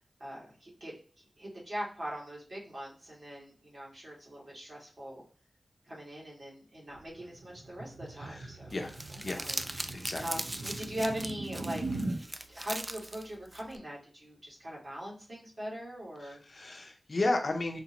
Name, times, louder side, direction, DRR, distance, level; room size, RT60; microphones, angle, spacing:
voice 1, 0.2-0.9 1.4-5.2 5.9-8.8 9.3-9.6 10.2-11.8 12.6-16.4, equal, 50° right, -5 dB, 2.0 m, -41 dB
sound 1, 6.9-12.2, right 2 dB, 90° right, 0.7 m, -40 dB
voice 2, 8.2-9.4 9.9-10.2 16.2-17.8, left 2 dB, 55° left, 4 dB, 0.8 m, -34 dB
Crumpling crinkling, 8.7-13.8, right 1 dB, 20° right, 0.3 m, -40 dB
4.3 x 2.8 x 2.9 m, 0.38 s
wide cardioid pair, 90°, 0 cm